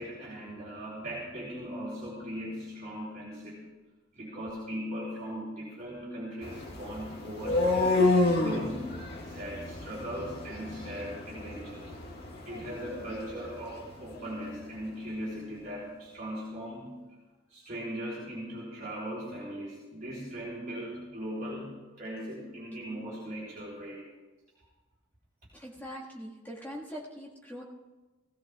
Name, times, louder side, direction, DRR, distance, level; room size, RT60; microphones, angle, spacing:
voice 1, 0.0-3.7 4.1-8.0 8.4-12.0 12.5-17.0 17.5-24.1, equal, 40° right, -6 dB, 3.6 m, -39 dB
sound 1, 6.4-14.4, left 2 dB, 50° left, 1.8 m, -30 dB
voice 2, 25.5-27.6, equal, 10° left, -4 dB, 1.7 m, -42 dB
18.5 x 16.0 x 2.4 m, 1.2 s
head